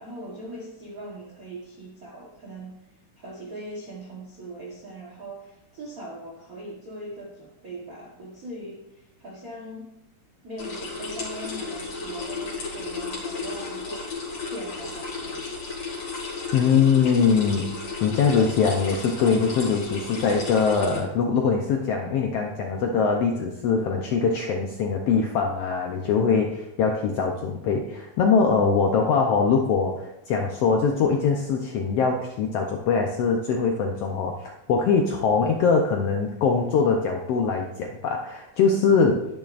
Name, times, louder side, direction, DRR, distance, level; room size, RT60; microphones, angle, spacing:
voice 1, 0.0-2.7 3.2-10.0 10.4-15.6, right 1 dB, 80° right, -2 dB, 0.7 m, -40 dB
sound 1, 10.6-21.0, left 4 dB, 55° left, 3.1 m, -34 dB
voice 2, 16.5-17.7 18.0-39.3, left 5 dB, 80° left, 2 dB, 1.4 m, -22 dB
10.5 x 10.0 x 2.5 m, 0.88 s
omnidirectional pair, 3.6 m